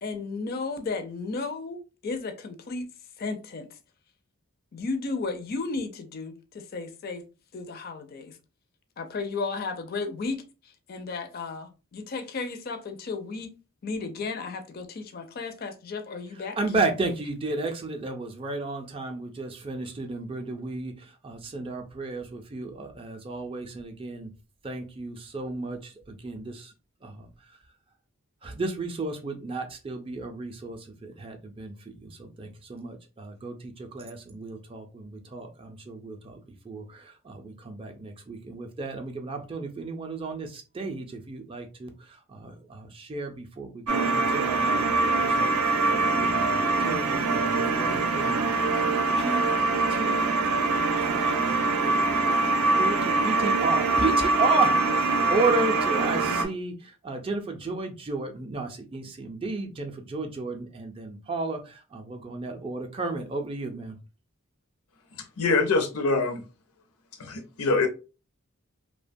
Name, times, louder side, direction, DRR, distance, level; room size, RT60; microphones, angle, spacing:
voice 1, 0.0-2.9 3.2-3.7 4.7-7.2 7.5-8.4 9.0-10.4 10.9-13.5 13.8-16.6, left 4 dB, 45° left, 0.4 m, -34 dB
voice 2, 16.6-20.9 21.2-24.3 24.6-25.9 26.2-26.7 27.0-27.2 28.4-36.4 36.7-41.9 42.3-48.4 49.2-49.5 49.9-50.4 50.9-52.1 52.8-56.7 57.0-64.0, right 3 dB, 25° right, 0.3 m, -33 dB
sound 1, 43.9-56.5, right 3 dB, 80° right, 0.5 m, -24 dB
voice 3, 65.4-66.4 67.2-67.9, left 3 dB, 85° left, 0.6 m, -24 dB
2.8 x 2.2 x 2.5 m
head